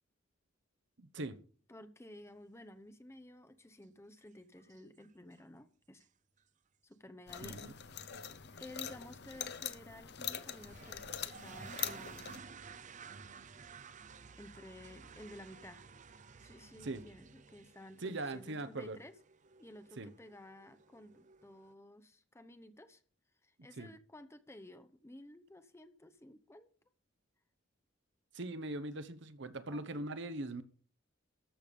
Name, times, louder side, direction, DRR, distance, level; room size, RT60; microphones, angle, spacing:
voice 1, 1.0-1.4 7.4-7.7 16.8-17.0 18.0-19.0 20.0-20.1 23.8-23.9 28.3-30.6, right 2 dB, 65° right, 1.1 m, -41 dB
voice 2, 1.7-6.1 6.8-7.6 8.6-12.4 14.3-15.8 16.4-19.1 19.6-23.0 23.4-26.7 29.7-30.1, left 1 dB, 15° left, 0.8 m, -54 dB
sound 1, 4.2-4.3 4.6-5.1 5.4-5.5 6.0-6.1 6.4-6.5 8.1-8.3 8.8-9.1 9.5-9.6 10.5-21.7, right 5 dB, 40° right, 0.6 m, -54 dB
sound 2, 7.3-12.4, left 9 dB, 55° left, 0.9 m, -43 dB
13.0 x 6.9 x 5.4 m
head